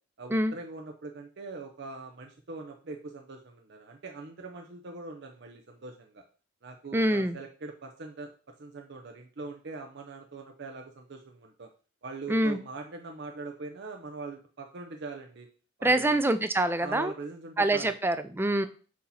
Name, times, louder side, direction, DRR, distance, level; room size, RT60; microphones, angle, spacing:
voice 1, 0.2-6.2 6.6-8.3 8.6-11.7 12.0-15.5 15.8-16.2 16.8-18.0, right 3 dB, 55° right, 2 dB, 0.6 m, -42 dB
voice 2, 6.9-7.4 12.3-12.6 15.8-17.1 17.6-18.7, right 1 dB, 10° right, 11 dB, 0.3 m, -25 dB
6.2 x 2.9 x 5.6 m, 0.38 s
head